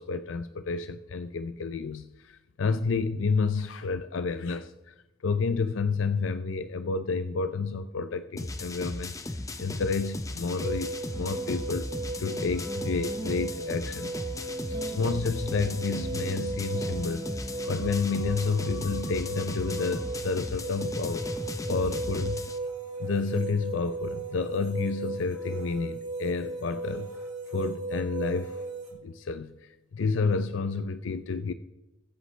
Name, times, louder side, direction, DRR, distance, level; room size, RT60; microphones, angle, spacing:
voice 1, 0.0-4.9 5.2-9.1 9.6-11.9 12.2-14.2 14.7-17.2 17.6-21.3 21.7-22.4 23.0-27.1 27.5-28.6 29.0-31.5, left 4 dB, 80° left, 11 dB, 0.5 m, -30 dB
sound 1, 8.4-22.6, left 2 dB, 15° left, 0.6 m, -36 dB
sound 2, 10.6-28.9, right 3 dB, 40° right, 3.7 m, -36 dB
sound 3, 11.1-18.2, equal, 20° right, 1.0 m, -43 dB
22.5 x 8.0 x 3.2 m, 1.1 s
head